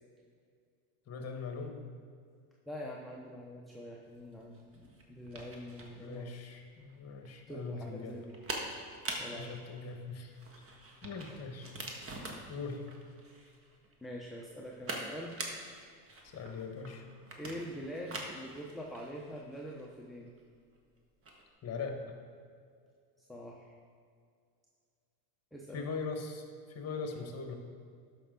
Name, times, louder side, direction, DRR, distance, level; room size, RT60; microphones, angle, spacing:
voice 1, 1.1-1.8 5.9-8.2 9.3-10.3 11.0-11.7 12.5-12.8 16.2-17.0 21.6-22.0 25.7-27.5, left 4 dB, 35° left, 4 dB, 1.5 m, -41 dB
voice 2, 2.7-6.4 7.5-8.4 9.2-9.5 14.0-15.4 17.4-20.3 23.2-23.8 25.5-25.9, equal, ahead, -3 dB, 0.8 m, -44 dB
sound 1, 4.1-21.5, right 2 dB, 30° right, 1.5 m, -45 dB
12.5 x 5.7 x 3.9 m, 2.2 s
supercardioid pair, 100°, 46 cm